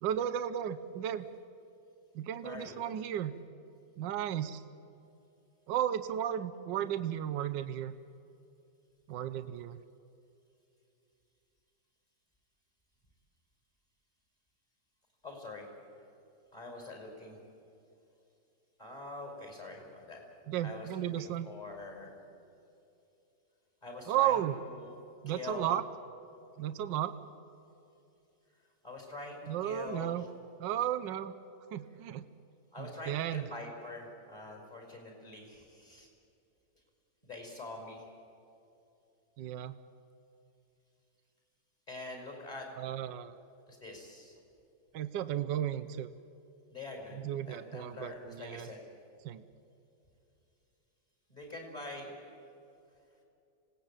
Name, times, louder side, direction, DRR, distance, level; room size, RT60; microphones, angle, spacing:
voice 1, 0.0-1.3 2.1-3.3 4.0-4.6 5.7-7.9 9.1-9.8 20.5-21.5 24.1-24.5 25.2-25.8 26.6-27.1 29.5-30.3 30.6-31.3 31.7-32.3 32.8-33.4 39.4-39.7 42.8-43.3 44.9-46.1 47.1-48.7 49.2-49.4, right 11 dB, 80° right, 10 dB, 1.5 m, -34 dB
voice 2, 2.4-2.8 15.2-15.7 16.5-17.4 18.8-20.2 20.6-20.9 21.2-22.1 23.8-25.0 25.3-25.7 28.8-30.2 32.7-36.1 37.2-38.1 41.9-42.7 43.7-44.4 46.7-47.2 47.5-48.8 51.3-52.1, left 2 dB, 20° left, 1 dB, 6.0 m, -44 dB
26.5 x 18.5 x 9.0 m, 2.7 s
omnidirectional pair, 1.9 m